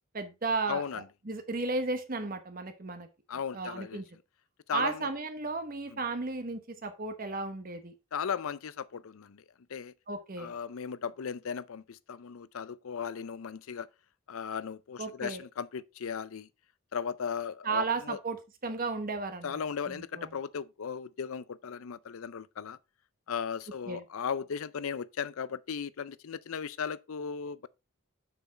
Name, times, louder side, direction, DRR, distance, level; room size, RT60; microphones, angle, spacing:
voice 1, 0.1-3.1 3.5-4.0 4.7-7.9 10.1-10.5 15.0-15.4 17.6-19.6 19.9-20.3 23.9-24.0, right 3 dB, 40° right, 1.0 m, -34 dB
voice 2, 0.7-1.1 3.3-4.0 4.7-5.1 5.9-6.0 8.1-9.4 9.7-9.9 10.4-13.9 14.3-16.5 16.9-18.2 19.4-22.8 23.3-27.7, left 6 dB, 70° left, 0.5 m, -36 dB
7.1 x 6.0 x 4.1 m
head